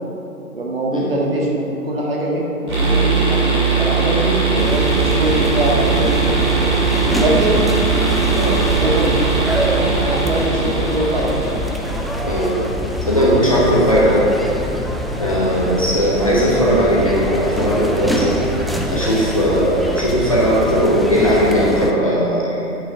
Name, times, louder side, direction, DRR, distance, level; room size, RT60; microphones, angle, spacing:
voice 1, 0.5-6.3 7.0-7.6 8.7-11.6, right 1 dB, 40° right, -3 dB, 1.7 m, -22 dB
sound 1, 2.7-12.2, right 5 dB, 20° right, 2.3 m, -19 dB
sound 2, 4.6-21.9, equal, ahead, 0.3 m, -24 dB
voice 2, 8.3-8.6 12.2-12.6 13.1-14.3 15.2-18.4 18.9-22.6, equal, 25° left, -6 dB, 0.8 m, -17 dB
10.0 x 6.3 x 4.9 m, 2.8 s
figure-of-eight pair, 150°, 46 cm